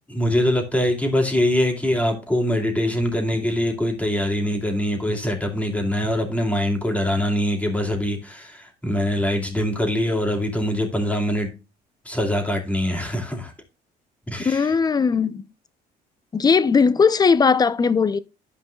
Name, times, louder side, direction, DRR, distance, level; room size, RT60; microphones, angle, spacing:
voice 1, 0.1-11.5 12.0-13.5 14.3-14.7, left 1 dB, 10° left, 2.7 m, -23 dB
voice 2, 14.4-15.4 16.3-18.2, left 5 dB, 25° left, 0.6 m, -18 dB
12.5 x 5.2 x 2.3 m
cardioid pair, 110°, 17 cm